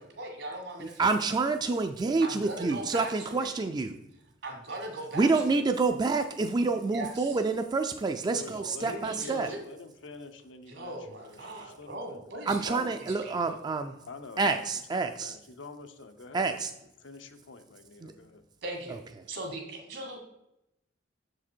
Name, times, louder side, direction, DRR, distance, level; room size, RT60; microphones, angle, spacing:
voice 1, 0.0-1.2 2.2-3.5 4.4-5.6 6.9-7.4 8.5-9.6 10.7-13.6 18.6-19.0 19.3-20.2, right 2 dB, 75° right, 1 dB, 1.8 m, -40 dB
voice 2, 0.8-4.0 5.1-9.5 12.5-14.0 14.4-15.3 16.3-16.7 18.0-18.1, right 3 dB, 25° right, 6 dB, 0.3 m, -28 dB
voice 3, 8.3-12.3 14.1-16.6 17.0-18.4, left 3 dB, 85° left, 7 dB, 0.7 m, -47 dB
6.8 x 4.9 x 4.4 m, 0.86 s
head